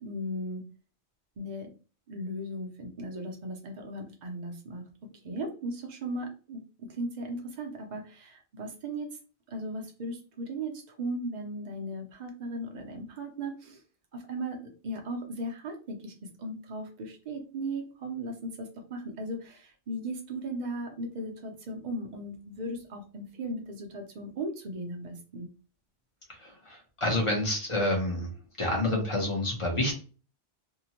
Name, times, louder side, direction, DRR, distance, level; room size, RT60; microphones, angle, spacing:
voice 1, 0.0-0.6 1.4-1.7 2.1-4.8 5.2-9.1 9.5-13.8 14.1-25.5, right 1 dB, 45° right, 3 dB, 0.7 m, -37 dB
voice 2, 26.4-28.3 28.6-29.9, left 1 dB, 35° left, 1 dB, 0.7 m, -28 dB
2.7 x 2.1 x 2.8 m, 0.36 s
omnidirectional pair, 1.1 m